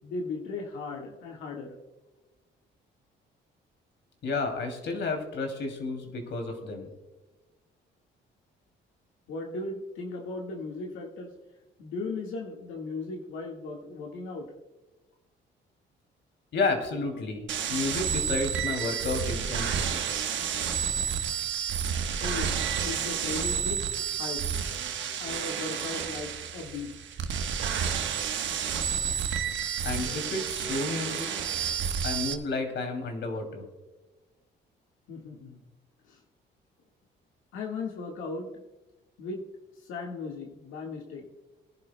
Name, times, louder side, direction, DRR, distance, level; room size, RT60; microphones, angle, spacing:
voice 1, 0.0-1.8 9.3-11.3 11.8-14.5 22.2-22.6 22.8-24.4 25.2-27.2 35.1-35.6 36.0-36.2 37.5-38.5 39.2-39.4 39.8-41.2, left 3 dB, 90° left, 0 dB, 1.7 m, -37 dB
voice 2, 4.2-6.9 16.5-20.0 29.8-31.3 32.0-33.7, left 3 dB, 65° left, 4 dB, 2.8 m, -31 dB
sound 1, 17.5-32.3, right 8 dB, 70° right, 1.2 m, -30 dB
23.0 x 11.0 x 2.2 m, 1.2 s
cardioid pair, 90°, 20 cm